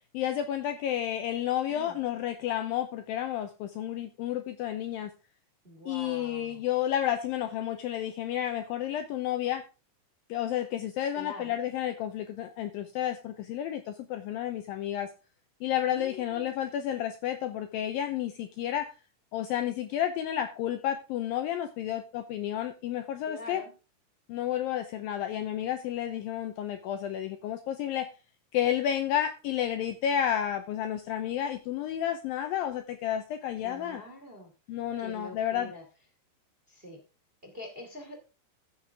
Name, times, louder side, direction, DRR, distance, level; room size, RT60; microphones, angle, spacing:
voice 1, 0.1-5.1 5.9-9.6 10.3-15.1 15.6-18.9 19.3-23.6 24.3-28.1 28.5-34.0 34.7-35.7, left 11 dB, 85° left, 8 dB, 2.1 m, -31 dB
voice 2, 5.6-6.6 11.1-11.6 15.9-16.5 23.3-23.7 33.6-34.5 35.0-35.8 36.7-37.0 37.4-38.2, left 1 dB, 20° right, 1 dB, 1.6 m, -44 dB
14.5 x 6.5 x 3.5 m, 0.31 s
omnidirectional pair, 4.9 m